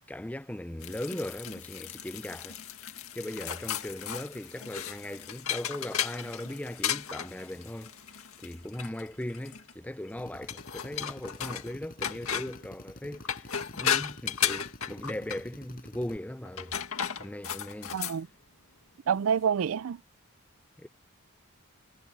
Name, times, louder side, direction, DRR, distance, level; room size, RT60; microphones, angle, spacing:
voice 1, 0.1-2.6 3.1-7.9 8.4-16.8 17.1-18.0 20.8-20.9, left 1 dB, 5° left, 0.6 m, -38 dB
sound 1, 0.8-9.7 10.5-11.7 12.0-12.6 13.1-15.4 16.4-18.2, left 9 dB, 80° left, 2.0 m, -35 dB
Drill, 10.2-16.2, left 1 dB, 45° left, 5.8 m, -49 dB
voice 2, 17.9-18.3 19.1-20.0, right 7 dB, 70° right, 0.4 m, -27 dB
head